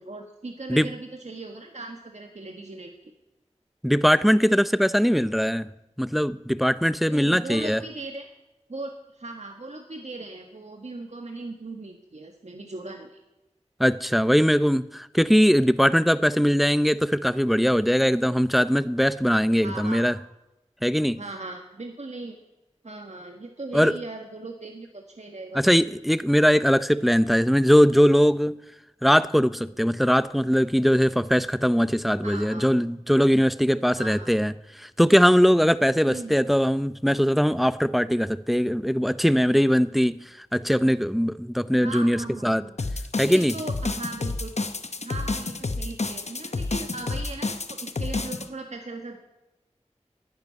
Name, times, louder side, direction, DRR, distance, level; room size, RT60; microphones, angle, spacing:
voice 1, 0.0-3.1 7.1-8.3 8.7-13.2 19.6-20.1 21.2-22.4 22.8-25.6 32.2-32.7 34.0-34.3 36.1-36.3 41.8-42.7 43.2-44.7 45.0-49.2, right 2 dB, 65° right, 1.5 m, -38 dB
voice 2, 3.8-5.7 6.0-7.8 13.8-20.2 20.8-21.2 23.7-23.9 25.5-28.6 29.0-42.6 43.2-43.5, equal, ahead, 0.5 m, -21 dB
sound 1, 42.8-48.5, left 3 dB, 65° left, 0.9 m, -30 dB
11.0 x 10.5 x 9.6 m
wide cardioid pair, 45°, 12 cm